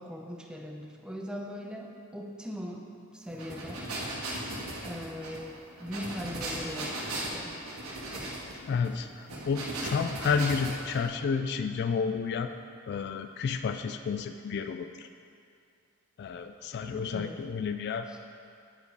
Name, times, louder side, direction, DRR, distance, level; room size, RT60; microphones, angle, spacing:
voice 1, 0.0-2.9 3.1-3.9 4.8-7.6 8.1-8.4 16.8-17.4 18.1-18.2, equal, 5° right, 1 dB, 0.6 m, -40 dB
sound 1, 3.3-11.1, right 1 dB, 80° right, 1.7 m, -37 dB
voice 2, 8.5-12.5 12.9-15.1 16.2-18.1, left 5 dB, 50° left, 8 dB, 0.3 m, -31 dB
9.1 x 5.2 x 4.7 m, 2.5 s
head